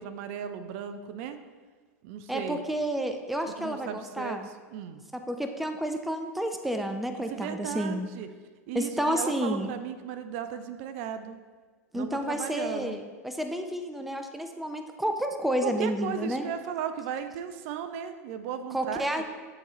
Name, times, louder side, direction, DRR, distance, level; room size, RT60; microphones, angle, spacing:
voice 1, 0.0-1.4 2.0-2.6 3.6-4.4 4.7-5.0 7.3-8.3 8.7-11.4 11.9-13.0 15.6-19.2, right 8 dB, 55° right, 9 dB, 0.5 m, -36 dB
voice 2, 2.3-4.5 5.1-8.1 8.7-9.7 11.9-16.5 18.7-19.2, equal, ahead, 6 dB, 0.4 m, -30 dB
9.6 x 3.9 x 3.1 m, 1.4 s
hypercardioid pair, 105°, 8 cm